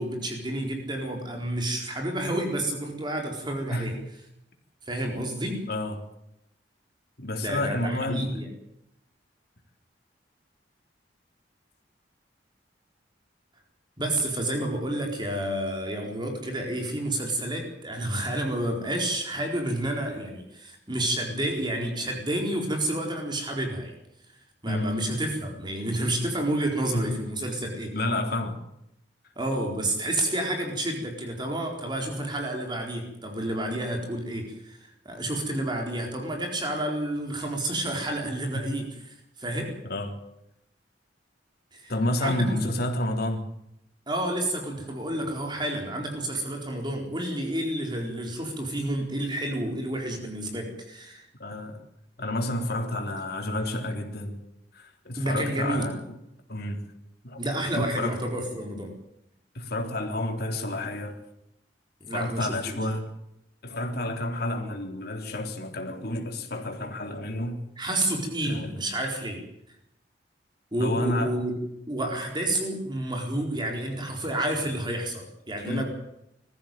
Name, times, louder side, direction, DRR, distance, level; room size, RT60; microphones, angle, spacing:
voice 1, 0.0-4.0 4.9-5.7 7.4-8.5 14.0-23.9 24.6-28.0 29.4-38.9 39.4-39.7 41.7-41.9 42.2-42.7 44.1-51.3 55.2-55.9 57.4-58.9 62.0-62.8 67.8-69.4 70.7-71.5 71.9-75.8, right 1 dB, 25° right, 4.3 m, -30 dB
voice 2, 5.7-6.0 7.2-8.4 24.7-24.9 26.9-27.1 27.9-28.6 39.9-40.1 41.9-43.5 51.4-51.8 52.2-54.4 54.7-56.2 56.5-56.8 57.2-57.4 57.7-58.2 59.6-61.2 62.1-63.0 63.6-67.6 68.4-68.7 70.8-71.4 75.7-75.8, left 1 dB, 60° left, 3.6 m, -30 dB
21.0 x 15.0 x 9.2 m
head